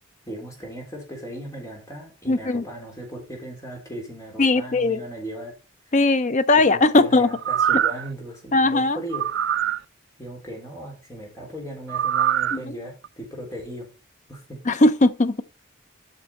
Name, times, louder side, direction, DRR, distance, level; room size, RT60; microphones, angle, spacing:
voice 1, 0.3-5.5 6.6-9.6 10.2-13.9 14.3-14.6, right 1 dB, 15° left, 3.6 m, -37 dB
voice 2, 2.3-2.6 4.4-5.0 5.9-7.3 8.5-9.0 12.5-12.7 14.7-15.4, left 2 dB, 35° left, 0.6 m, -19 dB
sound 1, 7.3-8.1 9.1-9.8 11.9-12.6 13.0-13.1, right 10 dB, 60° right, 0.4 m, -23 dB
8.6 x 6.3 x 4.3 m
head